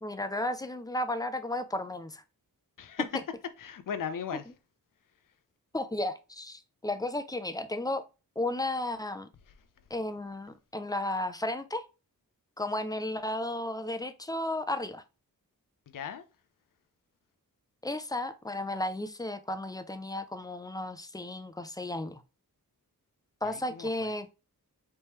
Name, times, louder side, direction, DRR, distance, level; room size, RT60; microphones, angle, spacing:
voice 1, 0.0-2.2 5.7-8.0 8.4-9.3 9.9-11.8 12.6-15.0 17.8-22.2 23.4-24.3, left 1 dB, 10° left, 0.3 m, -34 dB
voice 2, 2.8-3.1 3.6-4.5 9.5-9.6 15.9-16.3 23.4-24.2, left 7 dB, 65° left, 0.6 m, -37 dB
4.4 x 3.1 x 3.4 m
wide cardioid pair, 130°, 35 cm